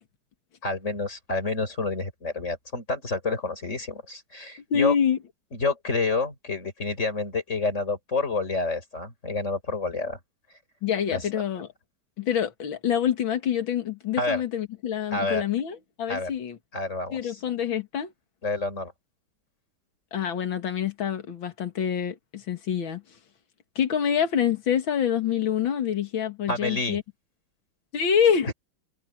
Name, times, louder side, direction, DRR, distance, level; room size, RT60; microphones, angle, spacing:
voice 1, 0.6-5.0 5.5-10.2 11.1-11.3 14.2-14.4 15.1-15.4 16.1-16.3 16.7-17.4 18.4-18.9 26.5-27.0, left 3 dB, 30° left, 5.4 m, -28 dB
voice 2, 4.7-5.2 10.8-11.7 12.2-16.6 17.1-18.1 20.1-23.0 23.8-27.0 27.9-28.5, left 8 dB, 65° left, 2.6 m, -26 dB
omnidirectional pair, 2.4 m